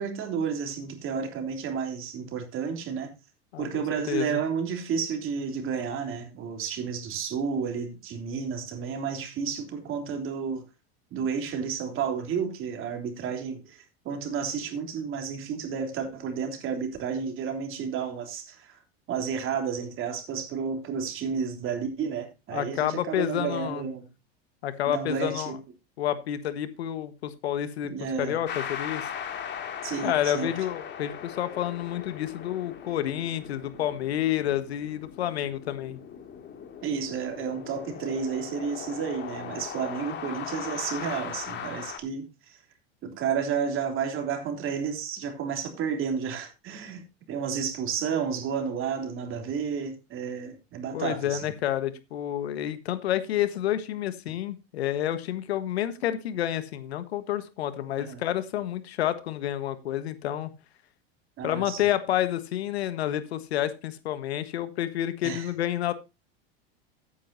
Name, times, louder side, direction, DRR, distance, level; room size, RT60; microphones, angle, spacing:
voice 1, 0.0-3.1 3.6-10.7 11.1-18.8 19.1-24.1 24.9-25.6 27.8-28.4 29.8-30.5 36.8-42.6 43.0-51.5 58.0-58.2 61.4-61.8 65.2-65.5, right 6 dB, 40° right, 3.5 m, -31 dB
voice 2, 3.5-4.4 22.5-23.8 24.6-25.5 26.0-29.1 30.0-36.0 50.9-60.5 61.4-65.9, left 12 dB, 90° left, 1.4 m, -29 dB
sound 1, 28.4-42.0, left 8 dB, 35° left, 2.4 m, -39 dB
13.5 x 9.6 x 2.7 m
supercardioid pair, 110°, 31 cm